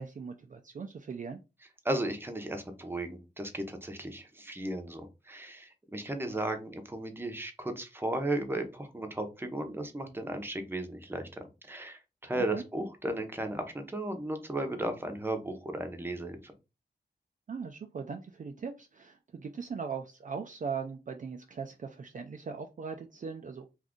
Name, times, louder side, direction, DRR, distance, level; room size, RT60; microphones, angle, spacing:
voice 1, 0.0-1.4 6.3-6.4 12.3-12.6 17.5-23.7, right 5 dB, 45° right, 0.4 m, -39 dB
voice 2, 1.8-16.5, right 1 dB, 10° right, 0.7 m, -35 dB
2.6 x 2.5 x 3.6 m
wide cardioid pair, 75°, 18 cm